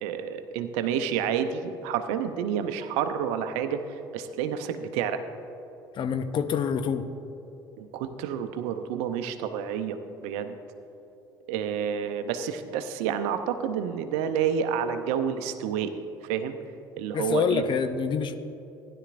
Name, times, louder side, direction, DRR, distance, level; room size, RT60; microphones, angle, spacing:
voice 1, 0.0-5.2 7.8-10.6 11.5-15.9 16.3-16.6 17.0-17.6, right 8 dB, 65° right, 9 dB, 0.7 m, -29 dB
voice 2, 5.9-7.1 17.1-18.4, left 6 dB, 45° left, 10 dB, 0.7 m, -26 dB
15.5 x 11.0 x 2.6 m, 2.9 s
hypercardioid pair, 60°, 12 cm